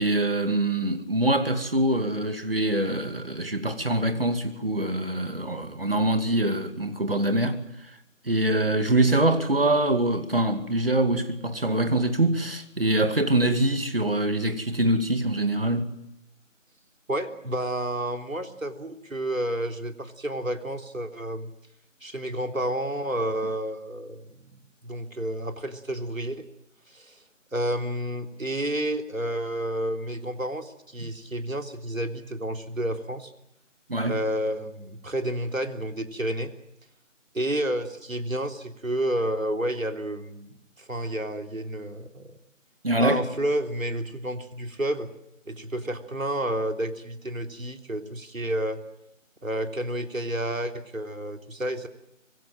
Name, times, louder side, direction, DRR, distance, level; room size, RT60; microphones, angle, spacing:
voice 1, 0.0-7.7 8.2-15.9 31.0-31.1 33.9-34.2 42.8-43.2, right 1 dB, 45° right, 2.5 m, -24 dB
voice 2, 17.1-21.5 22.0-24.5 24.8-26.5 26.9-27.2 27.5-33.3 34.0-36.5 37.3-42.4 43.0-45.1 45.5-48.8 49.4-51.9, right 1 dB, 85° right, 3.6 m, -30 dB
25.5 x 22.5 x 7.6 m
figure-of-eight pair, 175°, 39 cm